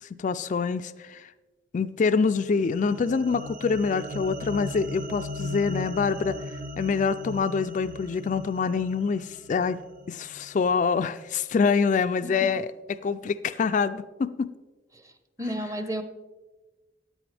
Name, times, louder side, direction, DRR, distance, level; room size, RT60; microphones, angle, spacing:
voice 1, 0.0-1.3 1.7-6.4 6.8-9.8 10.1-12.7 13.0-14.5, left 5 dB, 45° left, 11 dB, 0.3 m, -25 dB
sound 1, 2.2-10.7, left 1 dB, 50° right, 0.7 m, -38 dB
voice 2, 12.2-12.5 14.9-15.1 15.4-16.0, equal, 20° right, 9 dB, 0.8 m, -32 dB
15.5 x 9.2 x 3.3 m, 1.2 s
head